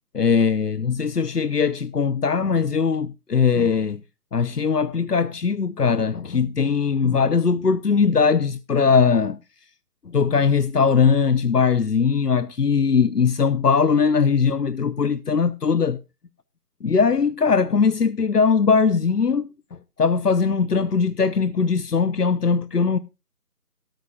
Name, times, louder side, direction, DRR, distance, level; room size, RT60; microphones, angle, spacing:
voice 1, 0.1-4.0 4.3-9.4 10.1-16.0 16.8-19.5 20.0-23.0, left 5 dB, 80° left, 0.9 m, -20 dB
15.5 x 13.5 x 2.3 m
figure-of-eight pair, 155°, 46 cm